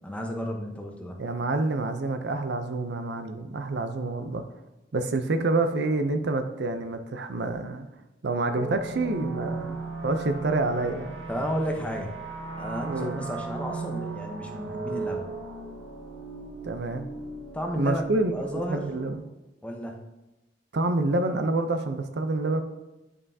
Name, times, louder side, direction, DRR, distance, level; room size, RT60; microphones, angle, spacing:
voice 1, 0.0-1.2 11.3-12.1 12.6-15.3 17.5-18.9 19.6-20.0, equal, 5° left, 2 dB, 0.8 m, -33 dB
voice 2, 1.2-4.4 4.9-7.9 8.2-11.2 12.9-13.2 16.6-17.1 17.8-19.2 20.7-22.6, right 2 dB, 60° right, 8 dB, 0.6 m, -27 dB
sound 1, 8.5-19.2, right 3 dB, 85° right, 1.1 m, -37 dB
9.6 x 5.5 x 2.7 m, 1.0 s
head